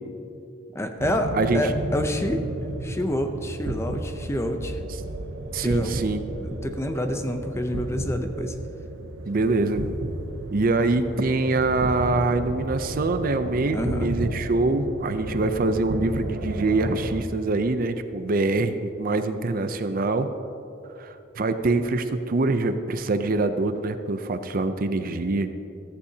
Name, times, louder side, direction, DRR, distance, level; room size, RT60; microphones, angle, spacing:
voice 1, 0.7-2.5 2.8-4.8 5.6-6.0 6.4-8.6 13.7-14.1, left 1 dB, 15° left, 6 dB, 0.6 m, -28 dB
sound 1, 1.0-17.2, right 1 dB, 85° right, 0.8 m, -33 dB
voice 2, 1.3-1.7 5.5-6.2 9.2-9.9 10.5-20.3 21.0-25.5, right 2 dB, 45° right, 9 dB, 0.5 m, -24 dB
14.5 x 14.5 x 2.8 m, 2.8 s
head